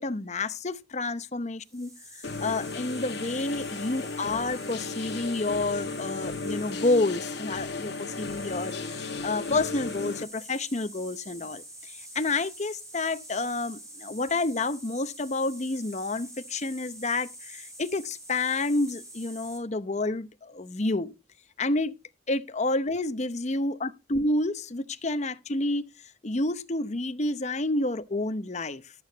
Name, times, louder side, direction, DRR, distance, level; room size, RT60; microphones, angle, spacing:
voice 1, 0.0-21.1 21.6-22.0 22.3-25.9 26.2-28.9, left 2 dB, 35° left, 0.8 m, -29 dB
sound 1, 1.6-19.6, right 1 dB, 15° right, 5.5 m, -46 dB
sound 2, 2.2-10.2, left 3 dB, 55° left, 1.1 m, -35 dB
12.5 x 8.7 x 4.0 m
head